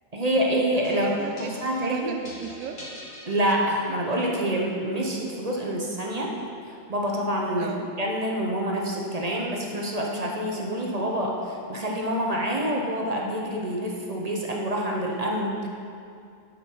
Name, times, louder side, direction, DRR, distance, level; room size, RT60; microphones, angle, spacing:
voice 1, 0.1-1.1 1.6-2.1 3.3-6.3 6.7-7.7 8.0-15.7, equal, 30° right, -1 dB, 0.8 m, -27 dB
sound 1, 0.8-4.2, left 1 dB, 45° left, 1.8 m, -44 dB
voice 2, 0.9-2.8 6.3-6.5 7.6-7.9, right 7 dB, 70° right, 4 dB, 0.9 m, -36 dB
8.8 x 7.0 x 4.6 m, 2.4 s
omnidirectional pair, 1.5 m